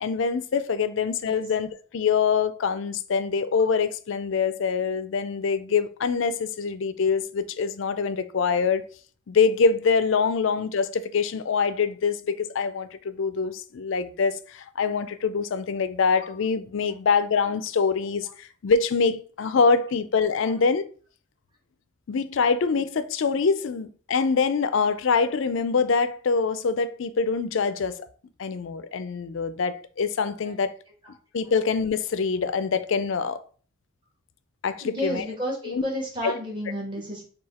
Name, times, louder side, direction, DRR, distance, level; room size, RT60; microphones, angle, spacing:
voice 1, 0.0-8.9 9.3-20.9 22.1-28.1 28.4-30.7 31.3-33.4 34.6-35.3 35.6-35.8 36.2-36.4, left 5 dB, 65° left, 0.4 m, -24 dB
voice 2, 34.8-37.2, left 1 dB, 20° right, 1.5 m, -31 dB
4.7 x 2.3 x 4.2 m
head